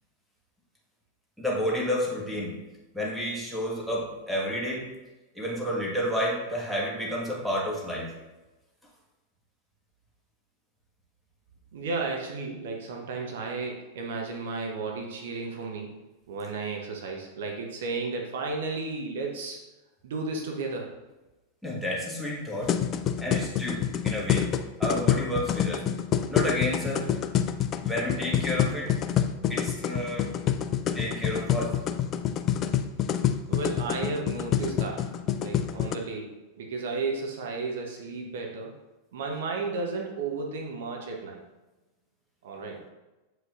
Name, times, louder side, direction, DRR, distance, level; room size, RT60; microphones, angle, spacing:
voice 1, 1.4-2.6 2.9-4.9 5.3-8.1 21.6-22.7 23.2-24.5 24.8-25.8 26.3-27.1 27.8-28.9 29.5-30.3 30.9-31.7, equal, ahead, -4 dB, 1.5 m, -30 dB
voice 2, 11.7-15.9 16.3-19.6 20.0-20.9 33.5-35.0 35.4-38.7 39.1-41.4 42.4-42.8, right 3 dB, 60° right, 1 dB, 0.8 m, -33 dB
sound 1, 22.6-36.0, left 9 dB, 30° left, 0.3 m, -27 dB
7.8 x 4.8 x 2.5 m, 1.1 s
figure-of-eight pair, 90°, 0 cm